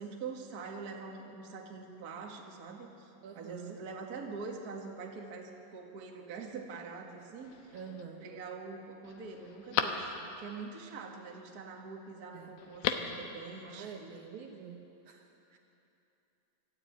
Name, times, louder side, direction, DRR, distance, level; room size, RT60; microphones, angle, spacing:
voice 1, 0.0-7.7 8.2-14.1, right 4 dB, 40° right, 1 dB, 1.5 m, -44 dB
voice 2, 3.2-3.8 7.7-8.3 12.3-12.6 13.6-15.6, right 7 dB, 65° right, 2 dB, 2.2 m, -47 dB
Telephone, 7.4-8.0 8.6-8.7 9.0-10.6 12.6-13.2 13.5-13.6, left 9 dB, 80° left, 2.8 m, -36 dB
25.0 x 12.5 x 8.7 m, 2.8 s
omnidirectional pair, 4.2 m